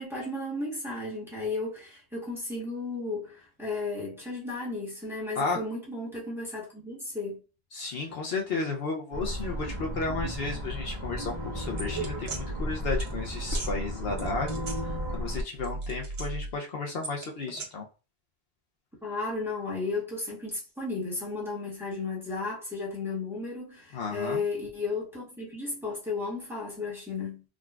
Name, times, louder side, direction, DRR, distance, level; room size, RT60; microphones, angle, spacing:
voice 1, 0.0-7.4 19.0-27.4, left 3 dB, ahead, 1.0 m, -34 dB
voice 2, 7.7-14.6 15.1-17.9 23.9-24.4, left 4 dB, 70° left, 0.8 m, -33 dB
sound 1, 9.1-15.4, equal, 40° right, 1.0 m, -33 dB
sound 2, 11.8-12.4 13.0-13.1 13.5-13.7 14.2-15.3 15.6-16.5 17.0-17.7, right 3 dB, 65° right, 1.1 m, -36 dB
3.6 x 2.3 x 2.3 m
omnidirectional pair, 1.1 m